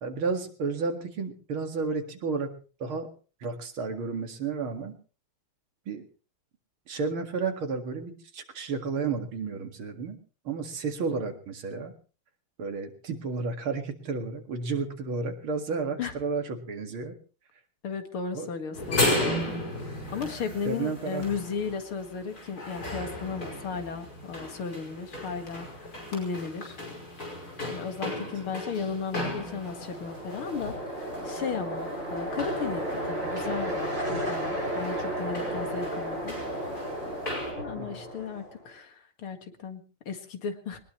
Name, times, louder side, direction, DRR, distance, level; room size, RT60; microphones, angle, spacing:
voice 1, 0.0-2.5 2.8-3.1 3.4-5.0 5.9-6.0 6.9-10.2 10.4-11.9 12.6-17.2 18.3-18.5 20.7-21.3 28.1-28.3 37.8-38.0, right 4 dB, 75° right, 6 dB, 2.9 m, -32 dB
voice 2, 17.8-19.4 20.1-25.7 26.1-26.8 27.6-36.4 37.6-40.8, left 5 dB, 80° left, 7 dB, 2.8 m, -35 dB
sound 1, 18.7-37.5, left 1 dB, 45° left, 6.0 m, -36 dB
sound 2, 29.6-38.6, right 1 dB, 35° right, 8.0 m, -33 dB
22.0 x 19.5 x 3.1 m, 0.36 s
omnidirectional pair, 2.3 m